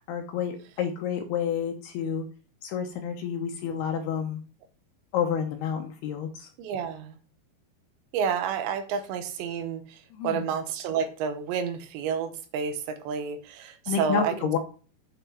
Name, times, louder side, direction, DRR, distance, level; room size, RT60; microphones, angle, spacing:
voice 1, 0.1-2.3 2.6-4.4 5.1-6.5 10.1-10.5 13.9-14.6, left 8 dB, 75° left, 5 dB, 2.5 m, -29 dB
voice 2, 6.6-7.2 8.1-14.6, right 7 dB, 75° right, 9 dB, 3.0 m, -30 dB
8.4 x 6.5 x 6.0 m, 0.39 s
omnidirectional pair, 5.4 m